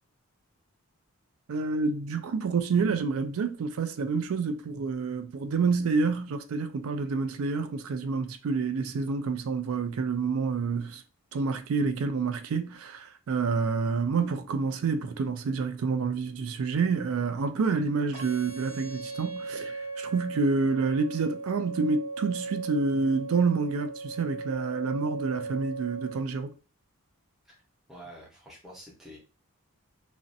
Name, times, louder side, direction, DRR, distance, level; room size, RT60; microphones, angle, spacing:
voice 1, 1.5-11.0 11.3-26.5, right 4 dB, 65° right, 0.3 m, -28 dB
sound 1, 18.1-26.1, right 3 dB, 85° right, 0.9 m, -37 dB
voice 2, 27.9-29.2, equal, ahead, 0.7 m, -47 dB
2.5 x 2.1 x 2.6 m
head